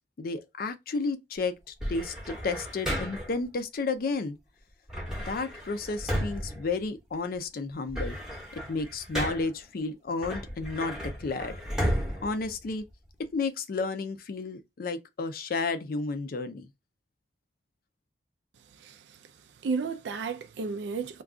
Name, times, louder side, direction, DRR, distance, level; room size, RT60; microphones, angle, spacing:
voice 1, 0.2-4.4 5.3-8.2 8.5-11.6 12.2-12.8 13.3-16.7, left 3 dB, 55° left, 0.4 m, -32 dB
sound 1, 1.8-3.4 4.9-7.4 7.7-9.7 10.2-13.2, equal, 5° right, 0.8 m, -34 dB
voice 2, 18.8-19.2 19.6-21.2, right 4 dB, 70° right, 0.4 m, -33 dB
2.4 x 2.3 x 3.5 m
head